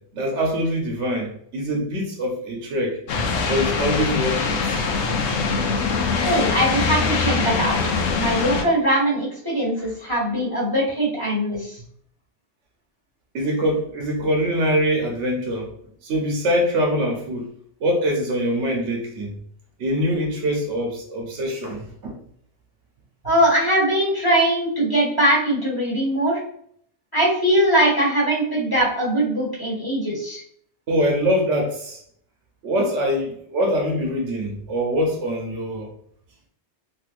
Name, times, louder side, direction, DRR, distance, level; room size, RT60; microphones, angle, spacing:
voice 1, 0.1-3.0 3.5-4.8 13.3-15.7 16.0-17.5 17.8-19.4 19.8-22.2 30.9-32.0 32.6-35.9, equal, 85° right, 0 dB, 1.2 m, -23 dB
sound 1, 3.1-8.6, left 4 dB, 75° left, 0.9 m, -23 dB
voice 2, 6.2-7.8 8.2-11.8 23.2-26.4 27.1-30.4, right 1 dB, 20° left, -5 dB, 1.0 m, -21 dB
3.3 x 2.7 x 2.4 m, 0.64 s
omnidirectional pair, 1.2 m